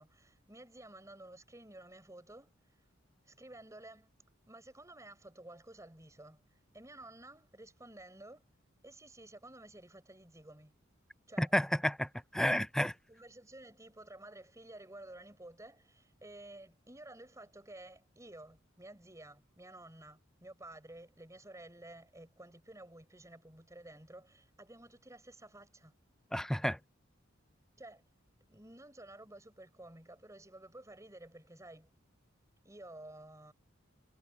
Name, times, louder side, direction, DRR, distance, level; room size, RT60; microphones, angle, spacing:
voice 1, 0.0-2.8 3.2-4.1 4.5-8.5 8.8-10.7 11.3-11.5 13.1-25.9 27.8-28.0 28.5-31.9 32.6-33.5, right 1 dB, 15° right, 5.6 m, -53 dB
voice 2, 11.4-12.9 26.3-26.8, equal, 5° left, 0.7 m, -31 dB
head